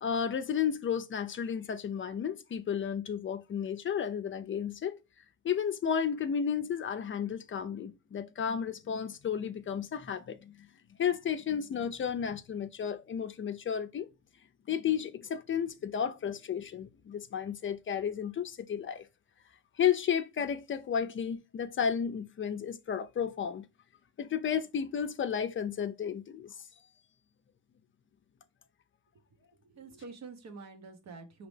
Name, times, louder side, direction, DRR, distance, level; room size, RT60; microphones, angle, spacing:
voice 1, 0.0-5.0 5.4-10.7 11.0-14.1 14.7-19.1 19.8-23.7 24.2-26.5, left 8 dB, 40° left, 0.5 m, -32 dB
voice 2, 29.1-31.5, right 4 dB, 65° right, 1.2 m, -48 dB
5.1 x 2.9 x 3.2 m
cardioid pair, 90°, 30 cm